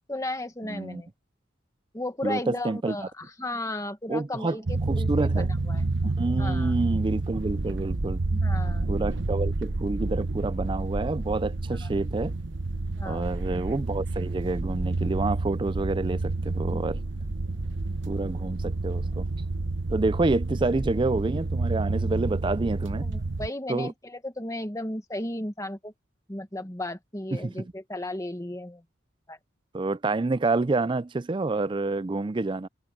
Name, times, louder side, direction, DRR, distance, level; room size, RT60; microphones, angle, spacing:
voice 1, 0.1-1.1 1.9-5.8 6.4-6.8 8.3-9.0 11.8-11.9 13.0-13.4 16.7-16.8 17.8-18.0 23.0-25.9 26.3-28.8 29.3-29.4, left 1 dB, 15° left, 1.5 m, -35 dB
voice 2, 0.6-1.0 2.2-3.1 4.1-4.6 4.9-5.5 6.2-8.2 8.9-12.3 13.1-17.0 18.1-19.3 19.9-23.1 23.7-23.9 27.3-27.7 29.7-32.7, right 3 dB, 25° right, 0.4 m, -28 dB
sound 1, 4.7-23.5, right 2 dB, 60° right, 1.0 m, -29 dB
head